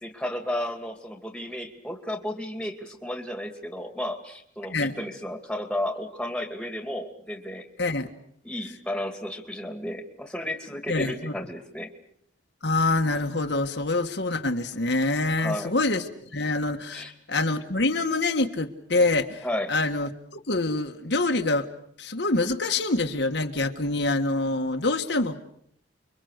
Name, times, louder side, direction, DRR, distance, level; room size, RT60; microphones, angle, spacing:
voice 1, 0.0-7.7 8.4-11.9 15.4-15.7 16.9-17.1 19.4-19.7, left 1 dB, 5° left, 5 dB, 2.4 m, -33 dB
voice 2, 10.9-11.3 12.6-16.0 16.3-21.7 22.0-25.4, left 2 dB, 65° left, 4 dB, 1.6 m, -26 dB
29.5 x 23.5 x 6.6 m, 0.68 s
head